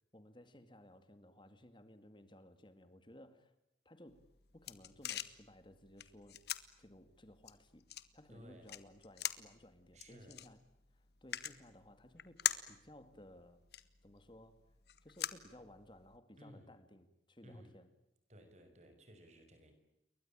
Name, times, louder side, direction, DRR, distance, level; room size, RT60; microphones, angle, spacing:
voice 1, 0.1-3.5 3.9-4.3 4.5-6.4 6.8-7.9 8.1-10.6 10.9-12.4 12.7-13.6 14.0-14.6 15.0-17.9, left 1 dB, 25° left, 10 dB, 2.2 m, -58 dB
sound 1, 4.1-16.2, left 11 dB, 60° left, 1.6 m, -45 dB
voice 2, 8.3-8.7 9.9-10.4 16.4-16.7 17.4-17.8 18.3-19.7, equal, 40° right, 7 dB, 6.2 m, -57 dB
29.5 x 23.0 x 8.8 m, 0.87 s
head